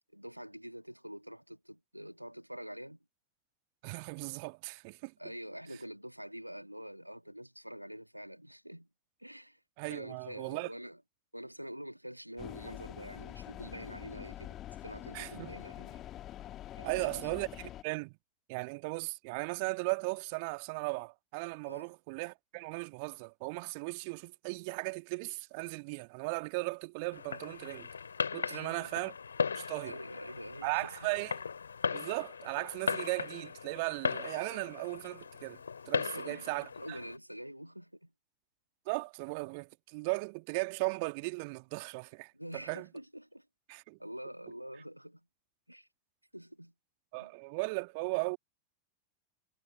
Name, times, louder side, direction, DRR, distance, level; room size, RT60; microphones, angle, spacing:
voice 1, 0.1-3.0 5.2-8.9 9.2-9.6 9.9-11.0 11.3-16.1 16.8-17.2 21.6-21.9 28.4-28.9 29.5-31.1 36.0-36.5 36.8-38.1 42.3-43.5 44.0-45.3 45.7-45.9 46.3-46.7 47.2-47.3, equal, 90° right, 2.2 m, -46 dB
voice 2, 3.8-5.1 9.8-10.7 15.1-15.5 16.8-18.1 18.5-27.9 28.3-29.1 29.6-30.0 30.6-31.4 31.9-35.6 35.9-37.0 38.9-42.3 42.7-42.9 43.7-44.0 47.1-48.4, right 30 dB, 45° right, 2.0 m, -37 dB
sound 1, 12.4-17.8, left 13 dB, 30° left, 1.8 m, -46 dB
Fireworks, 27.1-37.2, left 6 dB, 75° left, 3.0 m, -38 dB
figure-of-eight pair, 90°, 0 cm